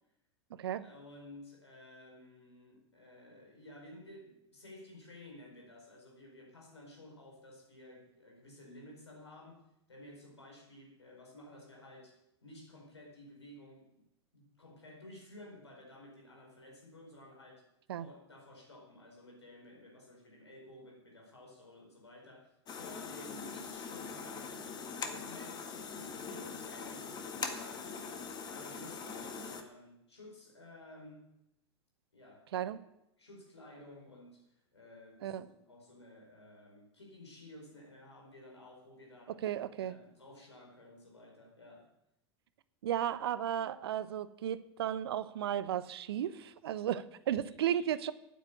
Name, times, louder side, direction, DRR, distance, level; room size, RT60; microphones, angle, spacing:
voice 1, 0.8-14.0 14.3-17.7 18.0-31.3 32.1-32.8 33.2-39.4 39.8-41.9 47.3-47.9, left 1 dB, 80° left, 0 dB, 4.6 m, -54 dB
sound 1, 22.7-29.6, left 5 dB, 30° left, 1.7 m, -42 dB
voice 2, 39.4-39.9 42.8-48.1, right 10 dB, 65° right, 15 dB, 0.7 m, -34 dB
9.3 x 8.8 x 8.6 m, 0.84 s
figure-of-eight pair, 85°, 14 cm